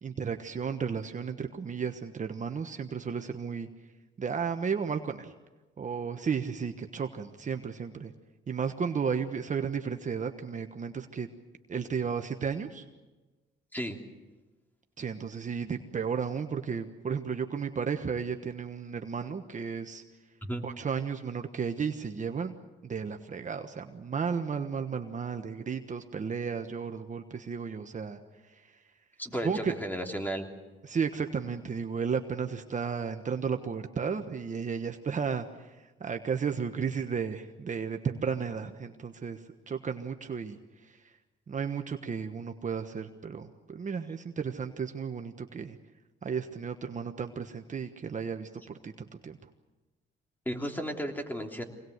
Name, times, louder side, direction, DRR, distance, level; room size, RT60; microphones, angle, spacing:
voice 1, 0.0-3.7 4.2-5.3 5.8-8.1 8.5-11.3 11.7-12.8 15.0-20.0 20.6-22.5 22.8-28.2 29.4-29.7 30.8-41.0 41.5-45.8 46.2-49.4, right 6 dB, 40° right, 6 dB, 1.3 m, -33 dB
voice 2, 29.2-30.4 50.4-51.6, equal, 10° left, 3 dB, 3.2 m, -34 dB
25.0 x 19.0 x 8.1 m, 1.2 s
cardioid pair, 90°, 20 cm